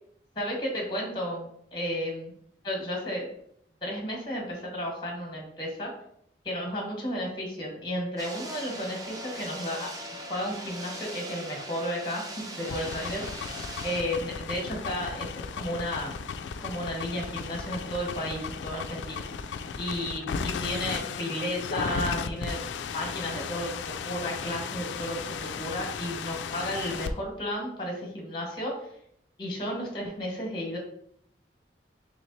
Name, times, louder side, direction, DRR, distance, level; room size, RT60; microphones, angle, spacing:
voice 1, 0.4-2.3 2.6-3.3 3.8-5.9 6.4-9.9 10.3-13.2 13.8-16.1 16.6-22.6 22.9-28.9 29.4-30.8, equal, 25° left, 0 dB, 1.1 m, -33 dB
sound 1, 8.2-14.0, right 1 dB, 20° right, 0.4 m, -40 dB
sound 2, 12.6-27.1, left 5 dB, 75° left, 0.3 m, -35 dB
3.3 x 3.1 x 4.0 m, 0.71 s
head